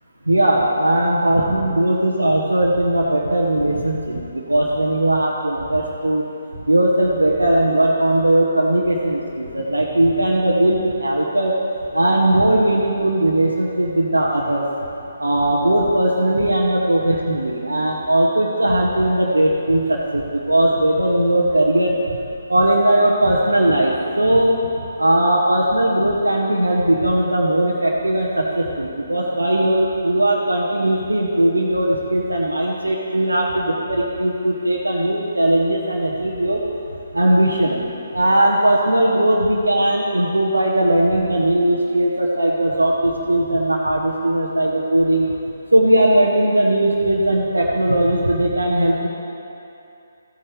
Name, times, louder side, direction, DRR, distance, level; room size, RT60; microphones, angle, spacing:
voice 1, 0.3-6.2 6.7-11.5 11.9-14.6 15.2-22.0 22.5-24.6 25.0-36.6 37.1-37.8 38.1-45.3 45.7-49.1, right 1 dB, 80° right, -3 dB, 1.0 m, -18 dB
14.5 x 8.7 x 3.3 m, 2.8 s
figure-of-eight pair, 140°, 0 cm